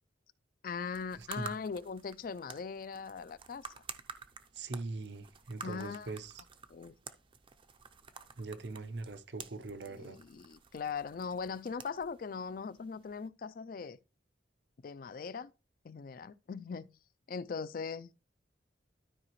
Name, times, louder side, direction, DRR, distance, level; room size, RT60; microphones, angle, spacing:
voice 1, 0.6-3.7 5.6-6.1 6.7-6.9 9.9-14.0 14.8-15.5 15.8-16.9 17.3-18.1, left 5 dB, 50° left, 0.4 m, -40 dB
sound 1, 0.8-13.3, right 6 dB, 25° right, 0.5 m, -51 dB
voice 2, 1.2-1.5 4.5-6.4 8.4-10.2, right 3 dB, 65° right, 0.7 m, -41 dB
12.5 x 4.8 x 3.1 m
head